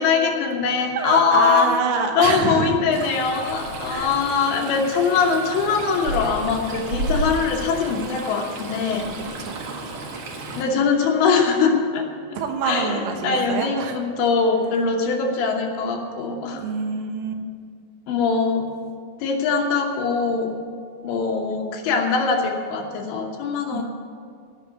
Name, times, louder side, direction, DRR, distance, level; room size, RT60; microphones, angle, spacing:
voice 1, 0.0-1.7 2.2-9.1 10.6-12.1 12.7-16.6 18.1-18.7 19.2-20.5 21.0-23.8, left 5 dB, 70° left, 1 dB, 3.1 m, -22 dB
voice 2, 1.0-2.8 3.9-4.1 9.4-9.8 12.4-14.0 16.5-17.3 23.7-23.8, right 5 dB, 80° right, 4 dB, 3.7 m, -26 dB
Stream, 2.9-10.6, right 2 dB, 60° right, 2.2 m, -32 dB
17.0 x 5.8 x 9.5 m, 2.1 s
omnidirectional pair, 5.8 m